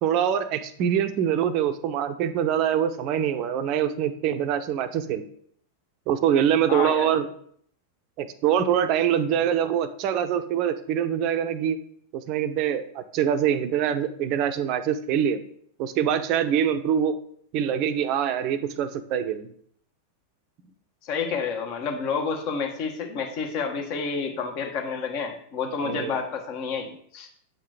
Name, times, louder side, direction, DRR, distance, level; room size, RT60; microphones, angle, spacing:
voice 1, 0.0-5.2 6.1-7.3 8.2-11.8 12.1-15.4 15.8-17.2 17.5-19.5 25.8-26.2, right 9 dB, 40° right, 11 dB, 0.6 m, -24 dB
voice 2, 6.7-7.1 21.0-27.3, left 5 dB, 45° left, 3 dB, 1.2 m, -29 dB
7.8 x 3.8 x 4.8 m, 0.63 s
figure-of-eight pair, 90°, 0 cm